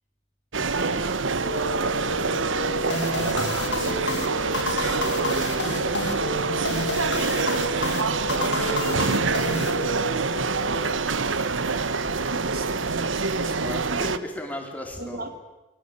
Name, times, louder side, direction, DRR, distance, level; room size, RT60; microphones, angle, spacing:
sound 1, 0.5-14.2, right 4 dB, 85° right, 1.2 m, -26 dB
voice 1, 0.8-3.8 7.4-10.6 11.2-14.2 15.0-15.3, right 1 dB, 50° right, 7 dB, 3.0 m, -41 dB
sound 2, 1.4-11.0, left 1 dB, 90° left, 3.5 m, -34 dB
sound 3, 2.9-10.3, left 3 dB, 70° left, 4.3 m, -31 dB
voice 2, 13.4-15.3, left 1 dB, 10° left, 2 dB, 4.1 m, -36 dB
26.5 x 23.0 x 8.3 m, 1.1 s
head